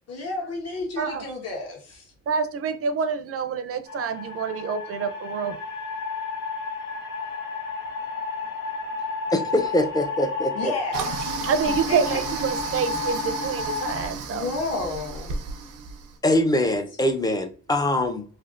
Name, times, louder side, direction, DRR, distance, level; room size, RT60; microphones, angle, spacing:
voice 1, 0.1-2.1 10.5-11.5 11.8-12.2 14.3-15.4 16.7-16.8, left 3 dB, 55° left, 1.2 m, -32 dB
voice 2, 2.3-5.6 11.5-14.5, right 6 dB, 50° right, 0.5 m, -27 dB
sound 1, 3.9-14.1, left 4 dB, 85° left, 1.0 m, -32 dB
voice 3, 9.3-10.7 16.2-18.2, left 1 dB, 15° left, 0.5 m, -23 dB
Toilet flush, 10.9-16.1, right 4 dB, 90° right, 0.7 m, -33 dB
3.3 x 2.4 x 2.4 m
cardioid pair, 90°, 30 cm